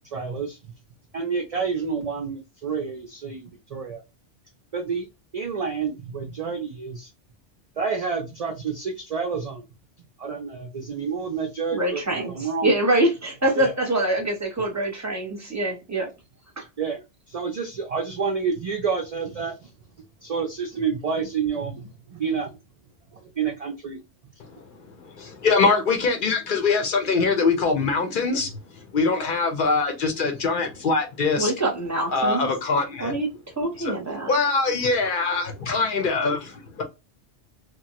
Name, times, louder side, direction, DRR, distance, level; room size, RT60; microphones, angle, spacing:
voice 1, 0.1-0.6 1.1-4.0 4.7-5.1 5.3-7.1 7.8-9.6 10.2-12.0 12.3-12.7 13.6-13.7 16.8-17.0 17.3-19.7 20.2-22.5 23.4-24.0, right 5 dB, 55° right, 0.4 m, -29 dB
voice 2, 11.7-16.1 16.6-16.7 31.4-32.5 33.0-33.3 33.6-34.3, right 1 dB, 15° right, 0.7 m, -25 dB
voice 3, 24.4-31.5 32.1-33.1 33.8-34.0 34.3-36.5, left 4 dB, 55° left, 0.7 m, -23 dB
3.0 x 2.1 x 2.8 m
omnidirectional pair, 1.2 m